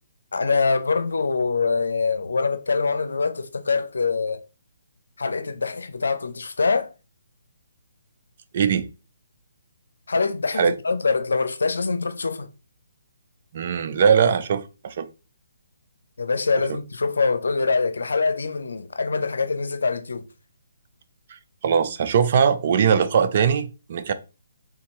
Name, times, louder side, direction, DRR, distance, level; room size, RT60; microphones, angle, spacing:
voice 1, 0.3-4.4 5.2-6.9 10.1-12.5 16.2-20.2, left 4 dB, 85° left, 0.6 m, -24 dB
voice 2, 8.5-8.9 10.6-10.7 13.5-15.1 21.3-24.1, right 7 dB, 45° right, 0.4 m, -21 dB
3.8 x 2.6 x 2.9 m
hypercardioid pair, 160°, 0 cm